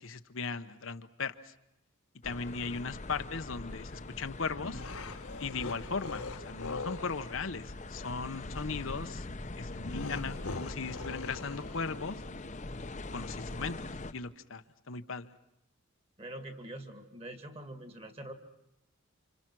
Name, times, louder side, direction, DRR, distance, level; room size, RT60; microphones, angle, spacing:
voice 1, 0.0-1.5 2.2-4.8 5.4-9.3 9.6-12.2 13.1-13.8 14.1-15.3, left 4 dB, 65° left, 9 dB, 0.9 m, -38 dB
sound 1, 2.2-14.1, left 2 dB, 35° left, 0.9 m, -43 dB
sound 2, 4.5-7.2 9.8-12.1, left 3 dB, 80° left, 1.4 m, -41 dB
voice 2, 16.2-18.3, right 1 dB, 25° right, 7 dB, 2.1 m, -44 dB
29.0 x 26.5 x 6.1 m, 0.86 s
head